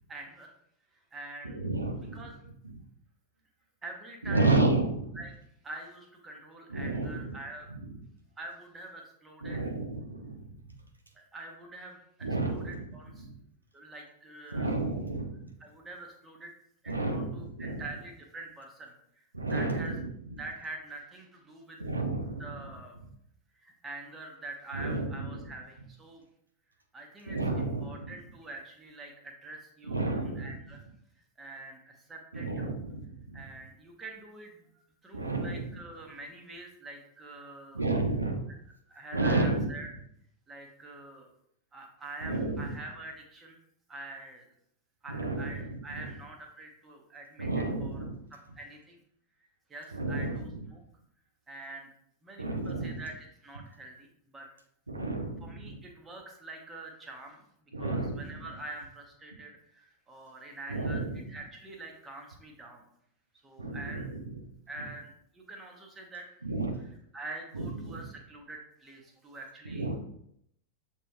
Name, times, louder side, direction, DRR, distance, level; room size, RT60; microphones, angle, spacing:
voice 1, 0.1-0.5 1.1-1.6 2.1-2.3 3.8-4.6 5.1-5.3 5.6-7.7 8.4-9.7 11.1-13.3 13.7-14.8 15.6-16.5 16.8-19.9 20.4-21.8 22.4-22.9 23.6-26.2 26.9-30.8 31.2-32.7 33.3-34.7 35.0-37.9 38.5-38.6 38.9-39.9 40.5-41.3 41.7-43.6 43.9-44.5 45.0-48.0 48.3-49.0 49.7-50.8 51.5-51.9 52.2-54.5 55.4-62.9 63.4-64.1 64.7-66.3 67.1-69.9, right 2 dB, 15° right, 1 dB, 1.0 m, -45 dB
voice 2, 1.4-2.3 2.6-2.7 4.2-5.2 6.7-7.4 9.4-10.4 12.2-12.8 13.2-13.3 14.5-15.5 16.9-17.8 19.3-20.0 21.8-22.7 24.7-25.1 27.3-28.1 29.9-30.6 32.3-33.4 35.1-35.6 37.7-38.4 39.1-39.6 42.2-42.7 45.1-46.1 47.4-48.2 49.9-50.4 52.4-53.0 54.9-55.8 57.7-58.2 60.7-61.2 63.6-64.4 66.4-66.8 67.5-68.0 69.7-70.0, right 2 dB, 80° right, 3 dB, 0.6 m, -31 dB
7.2 x 2.9 x 2.3 m, 0.72 s
figure-of-eight pair, 90°, 0 cm